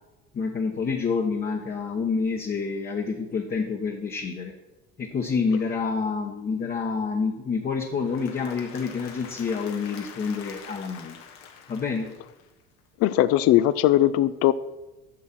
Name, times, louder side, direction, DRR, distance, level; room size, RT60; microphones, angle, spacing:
voice 1, 0.3-4.5 5.0-11.2 11.7-12.1, left 5 dB, 30° left, 1 dB, 1.1 m, -28 dB
Applause / Crowd, 7.8-12.8, left 7 dB, 75° left, 1.4 m, -45 dB
voice 2, 13.0-14.5, left 14 dB, 55° left, 15 dB, 0.5 m, -19 dB
7.7 x 6.3 x 5.8 m, 1.0 s
supercardioid pair, 95°, 30 cm